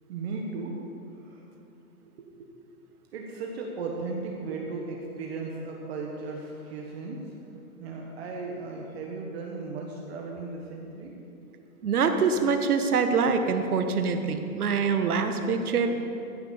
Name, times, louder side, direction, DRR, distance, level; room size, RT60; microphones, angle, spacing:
voice 1, 0.0-0.8 1.1-1.4 2.2-2.6 3.1-7.3 7.8-11.1, right 3 dB, 45° right, 0 dB, 1.4 m, -36 dB
voice 2, 11.8-15.9, right 5 dB, 90° right, 7 dB, 1.4 m, -25 dB
14.5 x 6.3 x 7.0 m, 2.8 s
hypercardioid pair, 160°, 43 cm